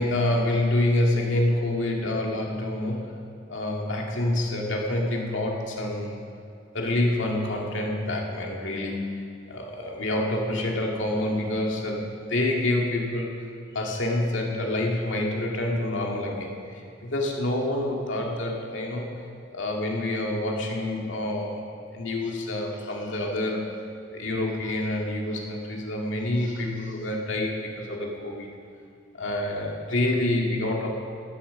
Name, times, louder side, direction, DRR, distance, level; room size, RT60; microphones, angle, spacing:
voice 1, 0.0-3.2 3.5-6.2 6.7-13.3 13.7-21.6 21.9-23.7 24.1-28.5 29.1-30.9, left 1 dB, 85° left, -1 dB, 2.1 m, -27 dB
14.5 x 8.9 x 6.8 m, 2.4 s
head